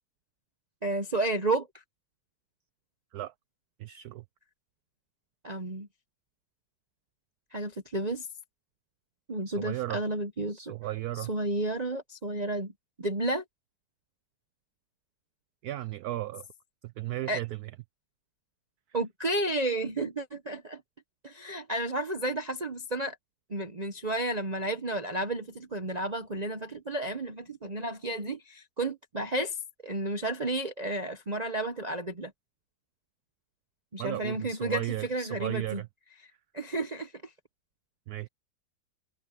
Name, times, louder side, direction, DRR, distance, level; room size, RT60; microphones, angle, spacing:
voice 1, 0.8-1.7 5.4-5.9 7.5-8.3 9.3-10.7 11.2-12.7 13.0-13.4 17.3-17.4 18.9-20.8 21.2-23.2 23.5-29.6 29.8-32.3 33.9-35.8 36.5-37.3, right 2 dB, 30° right, 0.7 m, -32 dB
voice 2, 3.8-4.2 9.5-10.0 10.5-11.3 15.6-16.5 16.8-17.7 34.0-35.9 38.1-38.3, right 15 dB, 75° right, 0.9 m, -35 dB
omnidirectional pair, 2.0 m